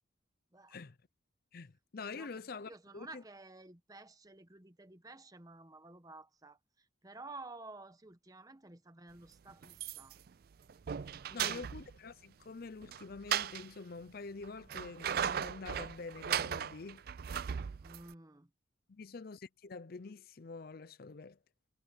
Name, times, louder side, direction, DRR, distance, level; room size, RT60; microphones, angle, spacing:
voice 1, 1.5-3.2 11.3-17.0 18.9-21.4, left 4 dB, 45° left, 0.5 m, -46 dB
voice 2, 2.1-10.2 11.1-11.6 17.8-18.5, right 2 dB, 20° right, 0.9 m, -53 dB
sound 1, 9.6-10.3 10.7-12.0 12.8-13.7 14.4-18.1, right 8 dB, 50° right, 0.4 m, -37 dB
head